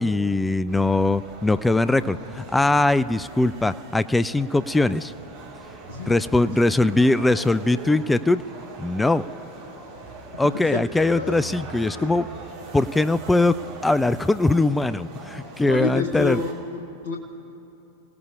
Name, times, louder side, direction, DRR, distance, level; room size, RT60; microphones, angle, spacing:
voice 1, 0.0-5.1 6.1-8.4 8.8-9.2 10.4-12.3 12.7-13.6 13.8-16.4, left 2 dB, 5° left, 15 dB, 0.3 m, -21 dB
sound 1, 0.7-16.5, right 3 dB, 50° right, 3.8 m, -41 dB
voice 2, 5.9-6.9 10.0-10.1 10.4-11.5 11.9-12.1 15.6-17.2, left 5 dB, 65° left, 4 dB, 0.9 m, -30 dB
29.5 x 17.5 x 2.5 m, 2.7 s
figure-of-eight pair, 90°, 0 cm